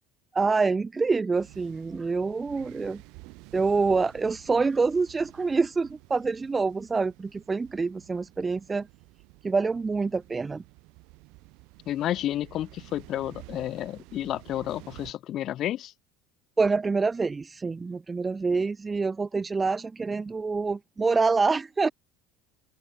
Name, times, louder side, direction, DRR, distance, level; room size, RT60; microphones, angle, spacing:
voice 1, 0.3-3.0 3.5-8.9 9.4-10.6 16.6-21.9, right 4 dB, 20° right, 0.6 m, -26 dB
sound 1, 1.3-15.1, right 27 dB, 70° right, 5.5 m, -51 dB
voice 2, 11.9-15.9, left 12 dB, 50° left, 2.7 m, -31 dB
open air
supercardioid pair, 100°, 0 cm